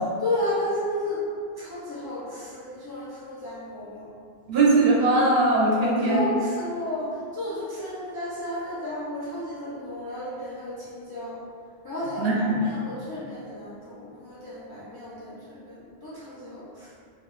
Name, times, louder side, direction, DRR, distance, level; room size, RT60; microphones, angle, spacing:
voice 1, 0.2-1.2 1.6-4.0 5.8-11.4 11.8-16.9, left 1 dB, 40° left, -11 dB, 0.3 m, -33 dB
voice 2, 4.5-6.2 12.2-12.6, right 2 dB, 75° right, -5 dB, 0.8 m, -20 dB
2.2 x 2.0 x 3.0 m, 2.3 s
omnidirectional pair, 1.1 m